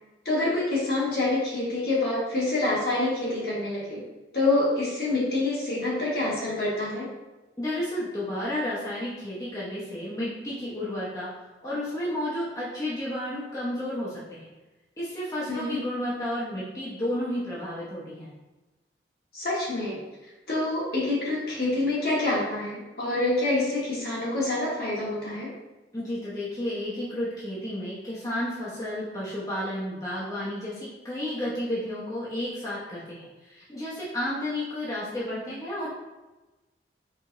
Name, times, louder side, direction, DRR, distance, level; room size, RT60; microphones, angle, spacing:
voice 1, 0.2-4.0 4.3-7.1 15.5-15.8 19.3-20.0 20.5-25.5, left 2 dB, 55° left, -6 dB, 1.4 m, -26 dB
voice 2, 7.6-11.3 11.6-14.5 15.0-18.3 25.9-35.9, left 1 dB, 20° left, -9 dB, 0.9 m, -32 dB
4.8 x 3.4 x 2.6 m, 1.1 s
head